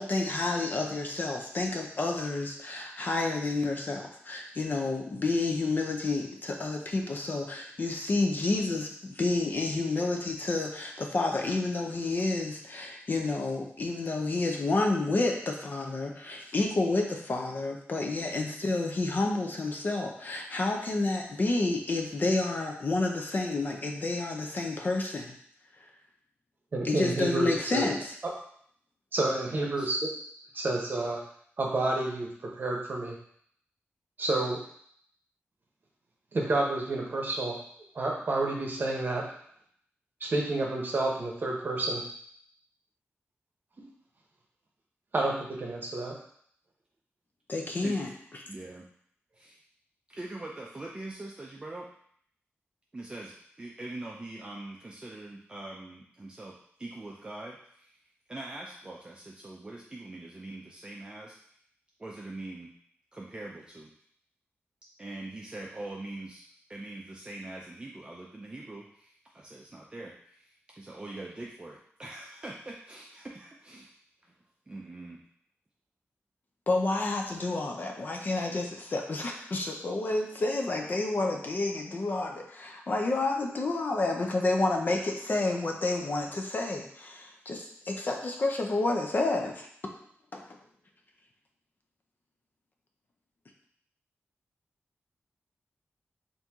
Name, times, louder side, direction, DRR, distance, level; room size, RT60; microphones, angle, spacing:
voice 1, 0.0-25.4 26.8-28.1 47.5-48.1 76.7-89.7 90.3-90.4, left 2 dB, 45° left, 2 dB, 0.6 m, -30 dB
voice 2, 26.7-27.9 29.1-30.1 30.5-31.2 31.6-32.3 32.6-33.2 34.2-34.6 36.3-37.6 37.9-39.2 40.2-42.0 45.1-46.2, right 2 dB, 45° right, -1 dB, 0.9 m, -29 dB
voice 3, 29.5-29.9 47.8-48.0 48.5-48.8 49.4-49.6 50.1-51.9 52.9-58.0 58.3-61.4 62.0-62.7 63.1-63.9 65.0-66.4 66.7-73.9 74.2-74.4 74.7-75.2, right 2 dB, 20° right, -3 dB, 0.4 m, -43 dB
4.3 x 2.6 x 3.5 m, 0.63 s
wide cardioid pair, 145°, 5 cm